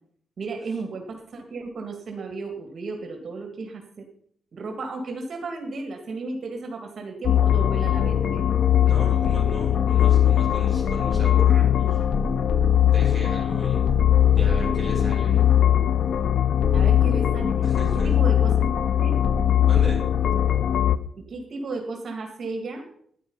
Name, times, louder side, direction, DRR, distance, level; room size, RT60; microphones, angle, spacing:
voice 1, 0.4-4.1 4.5-8.4 16.7-18.7 19.0-19.2 21.1-22.8, right 3 dB, 50° right, 4 dB, 2.0 m, -34 dB
sound 1, 7.2-21.0, left 10 dB, 70° left, 0.6 m, -20 dB
voice 2, 8.8-12.0 12.9-13.9 14.3-15.4 17.6-18.1 19.7-20.0, right 1 dB, 15° left, -3 dB, 6.8 m, -38 dB
12.5 x 10.5 x 5.5 m, 0.64 s
wide cardioid pair, 140°, 0 cm